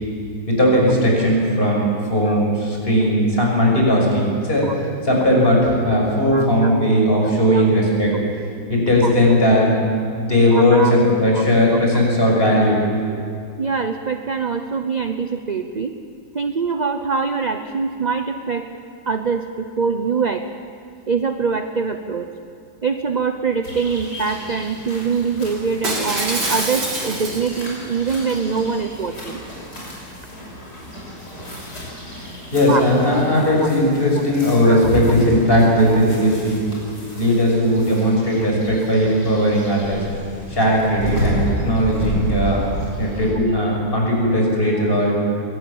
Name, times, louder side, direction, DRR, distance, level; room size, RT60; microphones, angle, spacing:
voice 1, 0.5-4.7 5.0-8.1 8.7-9.7 10.2-12.8 32.2-32.3 32.5-36.6 37.2-40.0 40.5-42.6 43.0-45.2, equal, 30° left, -2 dB, 6.3 m, -17 dB
voice 2, 6.3-6.7 7.5-7.7 9.0-9.1 10.5-10.9 11.3-11.4 13.6-15.9 16.3-18.7 19.1-20.4 21.1-22.3 22.8-29.4 32.7-32.8 34.7-34.8 44.7-44.8, right 5 dB, 40° right, 7 dB, 0.6 m, -23 dB
sound 1, 23.6-43.3, equal, 70° left, 6.7 m, -32 dB
Shatter, 25.8-27.6 28.1-28.4, right 2 dB, 90° right, 4.3 m, -25 dB
22.5 x 18.0 x 8.8 m, 2.4 s
omnidirectional pair, 1.8 m